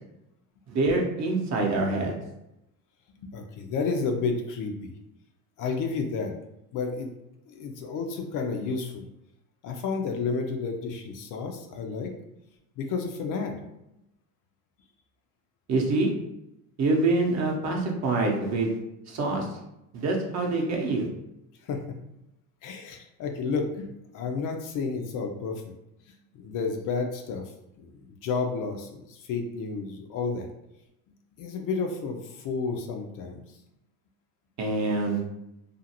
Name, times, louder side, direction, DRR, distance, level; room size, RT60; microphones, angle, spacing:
voice 1, 0.7-2.1 15.7-16.1 16.8-18.8 19.1-19.5 19.9-21.1 34.6-35.2, right 2 dB, 40° right, 0 dB, 0.8 m, -25 dB
voice 2, 3.2-4.9 5.6-6.3 6.7-7.1 7.5-9.0 9.6-12.1 12.8-13.5 21.7-21.8 22.6-23.9 24.1-25.6 26.3-27.5 27.8-30.5 31.4-33.4, left 4 dB, 50° left, 4 dB, 0.5 m, -31 dB
2.5 x 2.4 x 2.8 m, 0.86 s
supercardioid pair, 95°, 42 cm